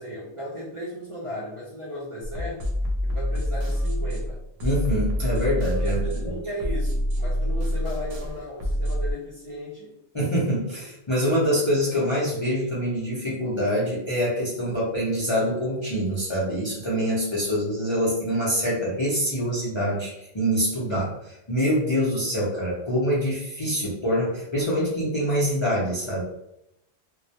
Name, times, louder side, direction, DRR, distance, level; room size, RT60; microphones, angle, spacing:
voice 1, 0.0-2.7 3.0-4.4 5.8-9.9, equal, 40° right, -7 dB, 0.5 m, -36 dB
sound 1, 2.2-9.1, equal, 65° right, 0.9 m, -26 dB
voice 2, 4.6-6.0 10.1-26.2, equal, 35° left, -7 dB, 0.4 m, -25 dB
2.2 x 2.1 x 2.7 m, 0.82 s
omnidirectional pair, 1.1 m